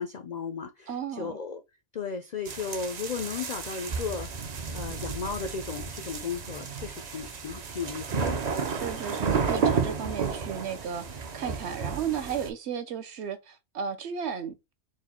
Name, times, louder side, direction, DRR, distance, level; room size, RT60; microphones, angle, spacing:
voice 1, 0.0-1.6 1.9-4.4 4.7-8.4, left 5 dB, 75° left, 0.4 m, -35 dB
voice 2, 0.9-1.4 8.7-14.7, right 7 dB, 65° right, 0.9 m, -34 dB
sound 1, 2.5-12.5, right 5 dB, 45° right, 0.5 m, -32 dB
4.7 x 2.2 x 4.1 m
omnidirectional pair, 1.3 m